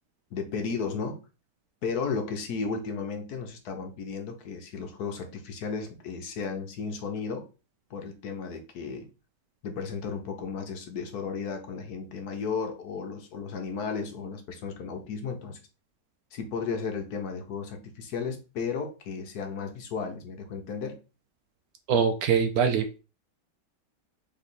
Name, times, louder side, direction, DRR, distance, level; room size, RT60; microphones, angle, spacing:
voice 1, 0.3-1.2 1.8-7.5 7.9-9.1 9.6-15.6 16.3-21.0, left 5 dB, 65° left, 1.3 m, -34 dB
voice 2, 21.9-23.0, right 6 dB, 70° right, 0.9 m, -23 dB
3.7 x 3.2 x 4.0 m
omnidirectional pair, 1.8 m